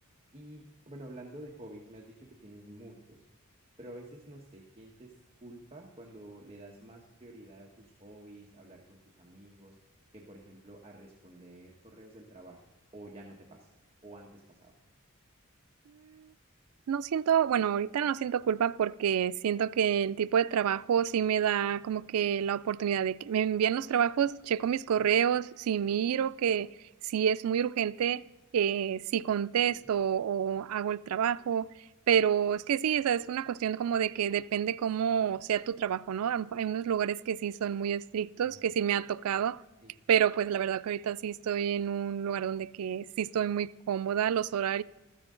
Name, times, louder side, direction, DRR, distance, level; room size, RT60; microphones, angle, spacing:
voice 1, 0.3-3.2 3.8-5.1 5.4-9.7 10.1-12.6 12.9-13.7 14.0-14.7 29.7-29.9 38.4-38.7 39.8-39.9, right 1 dB, 25° right, 1.3 m, -50 dB
voice 2, 16.9-26.7 27.0-28.2 28.5-31.7 32.1-39.6 40.1-44.8, right 8 dB, 80° right, 0.4 m, -28 dB
15.0 x 13.5 x 3.8 m
head